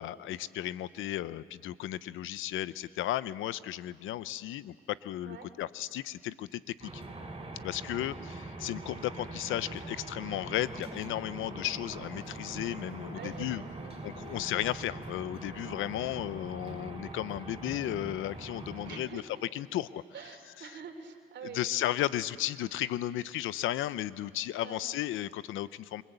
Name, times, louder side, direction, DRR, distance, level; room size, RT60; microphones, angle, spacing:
voice 1, 0.0-7.0 7.6-13.6 14.0-19.2 19.5-20.0 20.6-20.7 21.5-26.0, left 13 dB, 85° left, 16 dB, 0.7 m, -34 dB
sound 1, 6.8-19.0, right 2 dB, 25° right, 6.4 m, -43 dB
voice 2, 13.1-14.4 18.8-19.4 20.1-21.7 24.5-24.9, right 6 dB, 65° right, 6 dB, 3.2 m, -46 dB
27.0 x 24.0 x 8.1 m, 2.1 s
cardioid pair, 90°, 20 cm